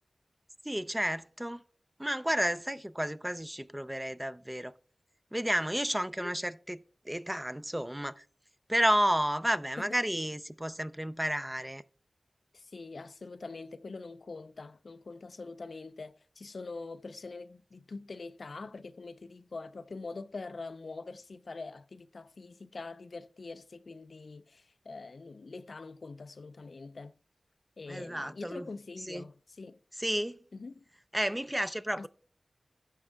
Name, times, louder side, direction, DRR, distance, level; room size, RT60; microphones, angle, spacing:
voice 1, 0.6-1.6 2.0-4.7 5.3-8.2 8.7-11.8 27.9-28.7 29.1-29.3 30.0-30.4 31.1-32.1, equal, 10° right, 0.5 m, -31 dB
voice 2, 12.5-27.1 27.8-29.8 30.5-30.8 32.0-32.1, left 3 dB, 70° left, 0.4 m, -44 dB
11.0 x 7.2 x 3.4 m
cardioid pair, 45°, 0 cm